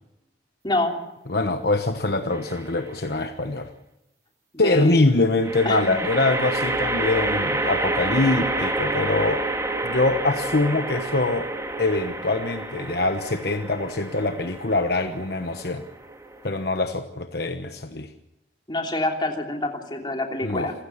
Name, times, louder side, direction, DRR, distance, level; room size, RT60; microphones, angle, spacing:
voice 1, 0.6-1.0 4.6-5.0 5.6-6.0 18.7-20.7, left 2 dB, 25° left, 3 dB, 3.1 m, -27 dB
voice 2, 1.3-3.7 4.6-9.4 9.8-11.5 11.8-15.8 16.4-18.1 20.4-20.7, left 2 dB, 55° left, 7 dB, 1.1 m, -24 dB
sound 1, 2.3-2.9 5.4-16.8, right 2 dB, 15° right, 2.0 m, -29 dB
27.5 x 16.5 x 7.2 m, 0.92 s
head